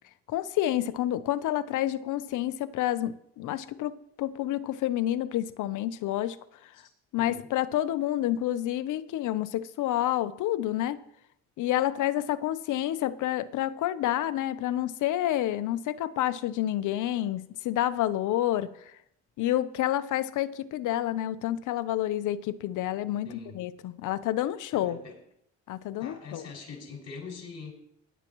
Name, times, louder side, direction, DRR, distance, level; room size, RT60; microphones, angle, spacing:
voice 1, 0.3-3.9 4.2-6.4 7.1-11.0 11.6-18.7 19.4-23.3 23.5-25.0 25.7-26.4, left 13 dB, 85° left, 13 dB, 0.8 m, -29 dB
voice 2, 23.2-23.6 24.7-25.2 26.0-27.7, left 5 dB, 60° left, -2 dB, 6.1 m, -43 dB
21.0 x 11.0 x 3.1 m, 0.73 s
cardioid pair, 90°, 30 cm